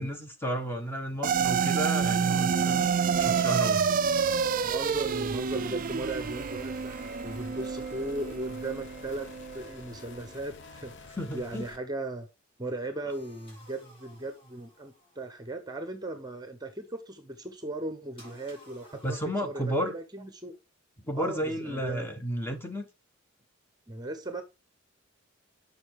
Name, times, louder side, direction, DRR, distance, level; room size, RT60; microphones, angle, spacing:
voice 1, 0.0-3.8 11.2-11.6 19.0-19.9 21.0-22.9, equal, 10° left, 1.1 m, -32 dB
sound 1, 1.2-9.7, right 6 dB, 40° right, 0.4 m, -28 dB
sound 2, 3.1-11.8, left 3 dB, 55° left, 0.9 m, -49 dB
voice 2, 4.6-7.0 7.2-12.3 12.6-20.5 21.1-22.1 23.9-24.4, right 2 dB, 20° right, 0.9 m, -37 dB
sound 3, 13.1-15.6 18.2-19.3, left 1 dB, 25° left, 3.7 m, -56 dB
6.9 x 5.3 x 4.7 m
head